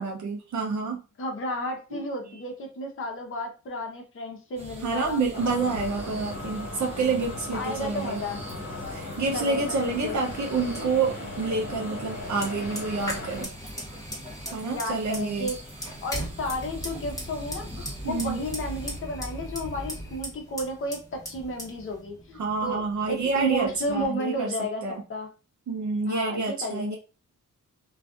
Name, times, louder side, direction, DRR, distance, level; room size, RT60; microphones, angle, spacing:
voice 1, 0.0-1.0 1.9-2.1 4.8-8.2 8.9-13.6 14.5-15.5 18.0-18.4 22.3-25.0 25.7-27.0, right 4 dB, 60° right, 0 dB, 0.6 m, -28 dB
voice 2, 1.2-5.2 7.5-8.4 9.3-10.1 14.7-15.6 16.0-24.8 25.1-25.3 26.1-27.0, equal, 40° left, 1 dB, 0.7 m, -32 dB
sound 1, 4.6-19.0, equal, 20° right, 0.7 m, -44 dB
sound 2, 5.3-13.4, left 2 dB, 55° left, 1.1 m, -37 dB
Fire, 12.2-24.0, equal, 10° left, 1.2 m, -38 dB
2.4 x 2.3 x 2.4 m, 0.32 s
cardioid pair, 105°, 33 cm